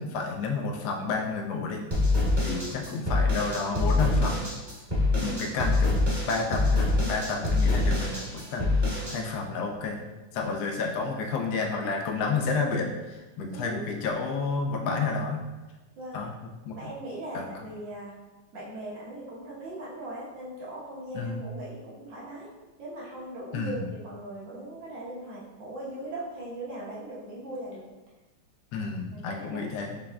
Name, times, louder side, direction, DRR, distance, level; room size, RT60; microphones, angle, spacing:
voice 1, 0.0-1.8 2.4-4.4 5.2-8.7 9.1-10.0 10.3-15.4 16.1-16.3 16.7-16.8 17.3-17.5 21.1-21.5 23.5-23.9 28.7-30.0, left 4 dB, 75° left, 2 dB, 0.9 m, -30 dB
sound 1, 1.9-9.2, left 2 dB, 25° right, 1.0 m, -25 dB
voice 2, 5.1-5.4 13.5-13.9 16.0-16.2 16.7-18.1 18.5-22.5 22.8-27.8 29.1-29.7, right 1 dB, 60° right, -6 dB, 1.9 m, -39 dB
6.0 x 3.4 x 2.3 m, 1.1 s
omnidirectional pair, 2.3 m